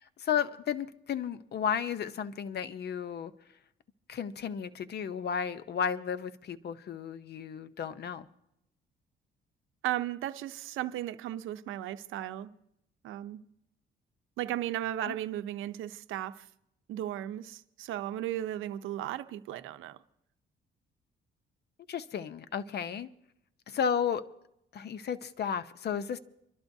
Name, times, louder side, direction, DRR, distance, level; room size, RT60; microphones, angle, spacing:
voice 1, 0.2-3.3 4.1-8.3 15.0-15.2 21.9-23.1 23.7-24.3 24.7-26.2, left 7 dB, 55° left, 0.8 m, -33 dB
voice 2, 9.8-12.5 13.0-13.4 14.4-16.5 16.9-20.0, right 13 dB, 85° right, 0.6 m, -35 dB
27.5 x 12.5 x 2.7 m
cardioid pair, 90°, 20 cm